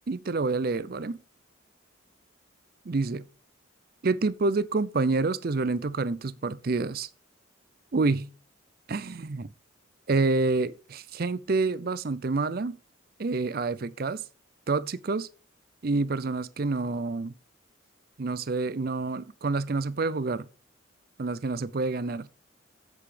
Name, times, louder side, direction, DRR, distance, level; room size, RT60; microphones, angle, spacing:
voice 1, 0.1-1.2 2.9-3.2 4.0-7.1 7.9-8.3 8.9-9.5 10.1-12.8 13.2-14.2 14.7-15.3 15.8-17.3 18.2-20.5 21.2-22.2, right 3 dB, 50° right, 0.5 m, -28 dB
8.3 x 8.0 x 4.9 m
head